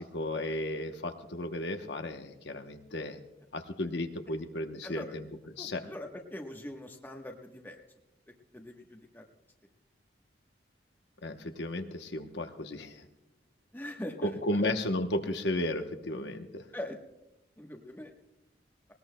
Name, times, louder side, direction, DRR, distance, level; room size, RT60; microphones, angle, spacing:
voice 1, 0.0-3.2 3.5-5.2 5.6-5.8 11.2-13.1 14.2-16.6, left 1 dB, 75° left, 6 dB, 0.9 m, -34 dB
voice 2, 4.8-5.1 5.6-7.8 8.5-9.3 13.7-14.6 16.7-17.0 17.6-18.1, left 1 dB, 10° left, 2 dB, 1.1 m, -42 dB
19.5 x 19.5 x 2.2 m, 0.97 s
head